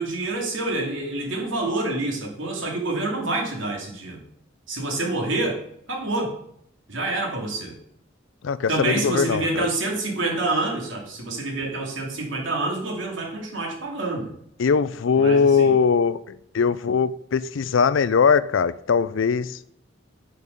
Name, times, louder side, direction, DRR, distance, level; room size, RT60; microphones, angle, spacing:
voice 1, 0.0-4.2 4.7-5.6 5.9-6.3 6.9-7.7 8.7-14.3 15.2-15.7, right 2 dB, 80° right, 2.7 m, -27 dB
voice 2, 8.4-9.7 14.6-19.6, left 5 dB, 80° left, 0.4 m, -21 dB
8.5 x 5.3 x 6.7 m
head